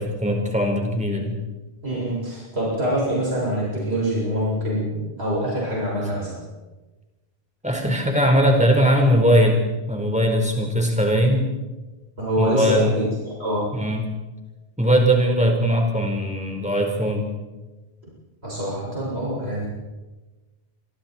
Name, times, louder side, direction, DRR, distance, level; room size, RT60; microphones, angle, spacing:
voice 1, 0.0-1.3 7.6-11.5 12.4-13.0 13.7-14.1 14.8-17.3, equal, 5° right, 1 dB, 4.7 m, -20 dB
voice 2, 1.8-6.4 12.2-13.7 18.4-19.7, right 1 dB, 75° right, -6 dB, 7.8 m, -25 dB
27.0 x 24.0 x 4.6 m, 1.2 s
omnidirectional pair, 1.1 m